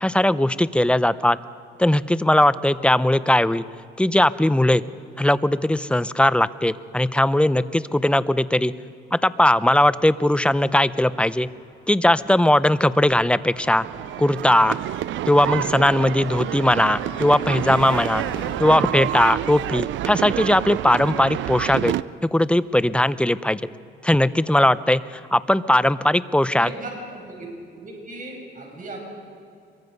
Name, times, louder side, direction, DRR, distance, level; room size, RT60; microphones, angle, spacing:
voice 1, 0.0-1.4 1.8-3.6 4.0-4.8 5.2-8.7 9.1-11.5 11.9-13.8 14.2-14.8 15.3-18.2 18.6-21.9 22.2-23.6 24.0-26.7, left 1 dB, 5° left, 15 dB, 0.7 m, -19 dB
Car passing by, 10.8-22.6, left 2 dB, 25° left, 2.5 m, -43 dB
sound 1, 13.6-22.0, right 14 dB, 70° right, 0.5 m, -28 dB
voice 2, 26.6-29.0, right 2 dB, 40° right, 0 dB, 6.9 m, -37 dB
25.5 x 23.0 x 5.4 m, 2.4 s
cardioid pair, 90°, 20 cm